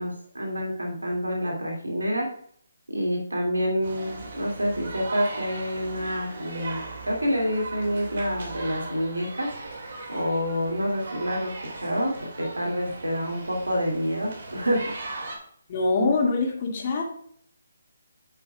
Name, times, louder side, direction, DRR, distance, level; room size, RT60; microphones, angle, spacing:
voice 1, 0.0-2.3 2.9-9.5 10.1-14.9, equal, 85° right, 0 dB, 2.4 m, -28 dB
sound 1, 3.8-15.4, right 3 dB, 55° right, 2.2 m, -38 dB
voice 2, 15.7-17.0, left 3 dB, 40° left, 0 dB, 2.1 m, -24 dB
9.3 x 6.1 x 2.4 m, 0.62 s
figure-of-eight pair, 150°, 0 cm